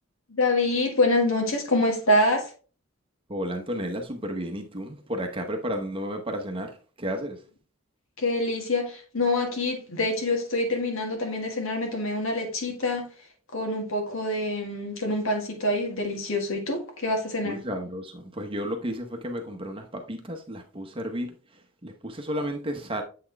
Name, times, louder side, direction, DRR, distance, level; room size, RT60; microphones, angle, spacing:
voice 1, 0.3-2.5 8.2-13.1 13.5-17.6, left 2 dB, 70° left, 1.9 m, -26 dB
voice 2, 3.3-7.4 17.4-21.4 21.8-23.0, equal, 25° right, 0.9 m, -32 dB
7.5 x 4.3 x 3.4 m
head